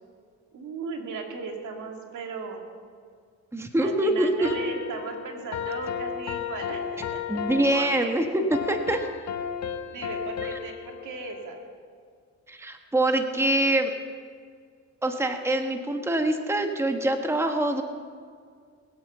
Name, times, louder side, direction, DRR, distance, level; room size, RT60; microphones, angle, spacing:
voice 1, 0.5-2.7 3.8-8.1 9.9-11.7, right 4 dB, 75° right, 2 dB, 2.4 m, -37 dB
voice 2, 3.5-4.6 7.3-8.2 8.7-9.1 12.5-13.9 15.0-17.8, right 1 dB, 10° right, 5 dB, 1.3 m, -24 dB
sound 1, 4.4-11.7, left 8 dB, 65° left, 1.1 m, -34 dB
21.0 x 8.4 x 6.9 m, 2.1 s
cardioid pair, 90°, 30 cm